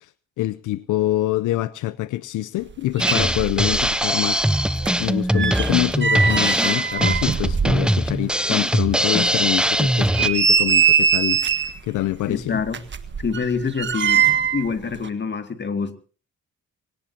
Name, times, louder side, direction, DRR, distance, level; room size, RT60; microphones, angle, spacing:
voice 1, 0.4-11.4 11.8-12.6, left 16 dB, 80° left, 17 dB, 0.7 m, -25 dB
sound 1, 2.7-2.8 3.0-4.0 4.2-8.2 8.6-8.7 9.2-9.3 9.9-11.8 12.7-14.7 14.9-15.1, right 7 dB, 40° right, 1.5 m, -22 dB
Drum kit, 3.0-10.3, right 1 dB, 5° right, 0.8 m, -21 dB
voice 2, 12.3-12.8 13.2-14.3 14.5-16.0, left 5 dB, 35° left, 8 dB, 2.4 m, -26 dB
23.0 x 18.0 x 2.9 m, 0.37 s
cardioid pair, 90°, 30 cm